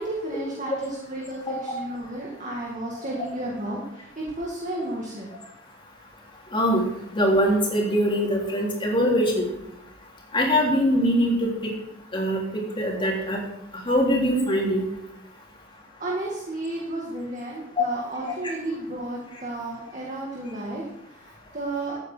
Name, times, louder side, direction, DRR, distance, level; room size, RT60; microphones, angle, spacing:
voice 1, 0.0-5.3 16.0-22.0, right 1 dB, 40° right, -3 dB, 2.2 m, -33 dB
voice 2, 7.1-9.5 10.3-11.3 12.1-12.4 12.8-13.4 13.9-14.8 18.4-18.5, equal, 25° left, -2 dB, 3.4 m, -22 dB
14.5 x 9.0 x 4.6 m, 0.85 s
head